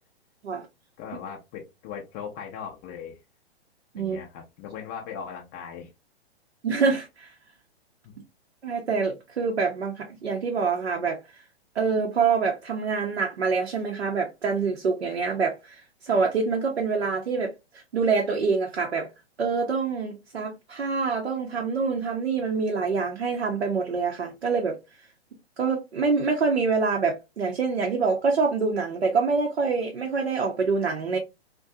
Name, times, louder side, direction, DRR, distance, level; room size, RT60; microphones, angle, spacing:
voice 1, 1.0-3.2 4.0-5.9, left 7 dB, 20° left, 0.4 m, -38 dB
voice 2, 6.6-7.3 8.6-11.2 11.8-17.5 17.9-19.1 19.4-24.8 25.6-31.2, right 4 dB, 80° right, 0.7 m, -26 dB
2.5 x 2.2 x 2.6 m
figure-of-eight pair, 115°, 32 cm